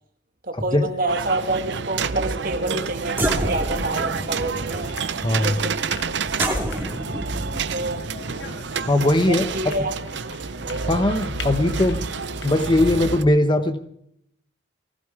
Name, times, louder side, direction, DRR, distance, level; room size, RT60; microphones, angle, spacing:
voice 1, 0.4-4.9 5.4-5.8 7.7-8.0 9.3-10.0, right 2 dB, 45° right, 4 dB, 2.2 m, -27 dB
sound 1, 1.1-13.2, right 5 dB, 65° right, 0.6 m, -29 dB
sound 2, 2.7-2.8 3.1-9.9, right 1 dB, 10° right, 2.2 m, -30 dB
sound 3, 3.4-12.8, left 4 dB, 60° left, 1.2 m, -41 dB
voice 2, 5.2-5.5 8.9-9.5 10.9-12.0 12.4-13.8, left 1 dB, 25° left, 9 dB, 0.8 m, -19 dB
19.0 x 15.0 x 4.7 m, 0.74 s
head